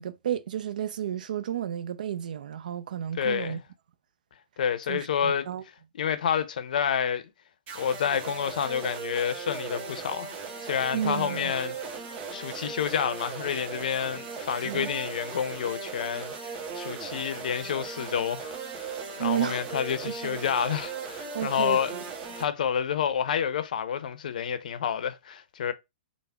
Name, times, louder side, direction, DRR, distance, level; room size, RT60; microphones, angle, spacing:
voice 1, 0.0-3.6 4.9-5.6 10.9-11.5 14.6-14.9 19.2-19.6 20.0-20.4 21.3-22.0, right 10 dB, 70° right, 0.4 m, -32 dB
voice 2, 3.2-3.6 4.6-5.5 5.9-7.2 7.7-10.3 10.6-12.0 12.3-18.9 19.2-21.9 22.4-25.7, left 8 dB, 65° left, 0.5 m, -29 dB
sound 1, 7.7-22.4, right 5 dB, 30° right, 1.1 m, -38 dB
3.5 x 2.0 x 3.4 m
hypercardioid pair, 130°, 5 cm